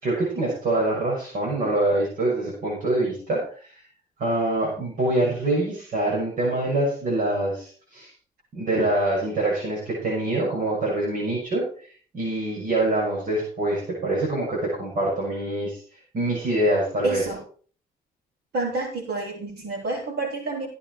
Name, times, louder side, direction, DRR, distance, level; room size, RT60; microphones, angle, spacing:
voice 1, 0.0-3.8 4.2-8.1 8.5-11.9 12.1-15.8 16.1-17.2, right 1 dB, 60° right, -4 dB, 6.8 m, -25 dB
voice 2, 17.0-17.4 18.5-20.7, right 3 dB, 80° right, -2 dB, 7.4 m, -28 dB
16.5 x 8.9 x 4.8 m, 0.43 s
wide cardioid pair, 160°, 16 cm